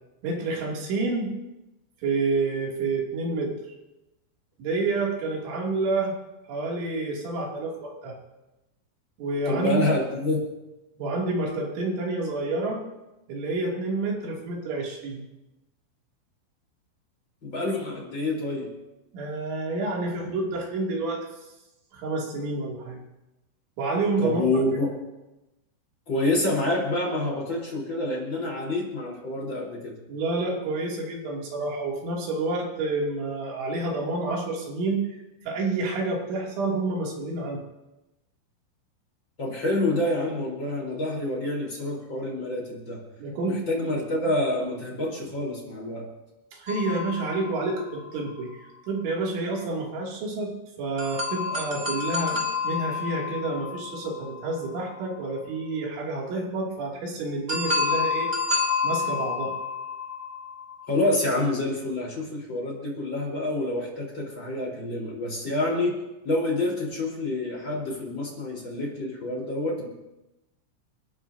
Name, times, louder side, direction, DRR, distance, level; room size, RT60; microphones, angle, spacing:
voice 1, 0.2-1.3 2.0-3.5 4.6-6.1 6.5-8.2 9.2-9.9 11.0-12.8 13.3-15.2 19.1-21.2 21.9-23.0 23.8-24.6 30.1-35.2 35.5-37.6 43.2-43.6 46.5-50.5 50.8-58.3 58.8-59.6, right 3 dB, 65° right, -2 dB, 4.8 m, -29 dB
voice 2, 9.5-10.4 17.4-18.7 24.2-24.9 26.1-30.0 39.4-43.0 43.5-46.1 60.9-66.0 66.2-69.9, left 2 dB, 25° left, -3 dB, 3.9 m, -27 dB
sound 1, 46.7-48.4 51.0-54.9 57.5-60.9, left 4 dB, 25° right, 1.5 m, -29 dB
30.0 x 13.0 x 2.7 m, 0.98 s
omnidirectional pair, 5.9 m